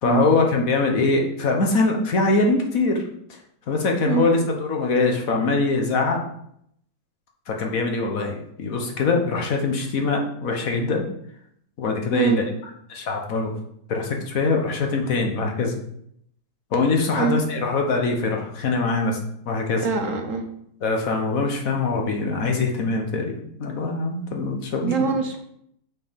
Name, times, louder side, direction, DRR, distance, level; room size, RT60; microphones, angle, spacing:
voice 1, 0.0-3.0 3.3-3.4 3.7-6.2 7.5-11.1 11.8-12.4 12.9-13.5 13.9-15.7 16.7-19.2 19.4-19.9 20.8-24.9, left 3 dB, 65° left, 2 dB, 1.5 m, -23 dB
voice 2, 19.8-20.4 24.8-25.4, right 6 dB, 60° right, 3 dB, 1.3 m, -23 dB
6.2 x 4.6 x 5.2 m, 0.71 s
omnidirectional pair, 1.6 m